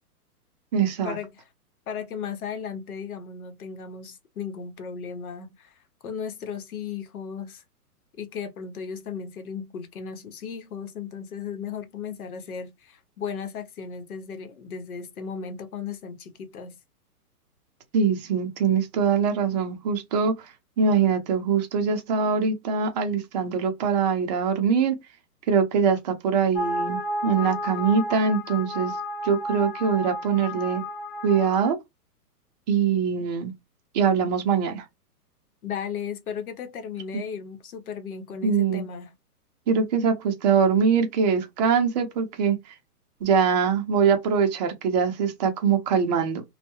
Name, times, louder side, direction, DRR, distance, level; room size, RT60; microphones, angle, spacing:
voice 1, 0.7-1.2 17.9-24.9 25.5-28.9 29.2-30.8 31.2-31.8 32.7-33.5 33.9-34.8 38.4-38.8 39.7-42.6 43.2-46.4, right 6 dB, 30° right, 0.6 m, -23 dB
voice 2, 1.9-5.7 6.0-7.6 8.2-16.8 35.6-39.1, left 6 dB, 65° left, 0.9 m, -35 dB
sound 1, 26.6-31.7, left 1 dB, 35° left, 0.4 m, -32 dB
2.3 x 2.2 x 2.9 m
hypercardioid pair, 140°, 47 cm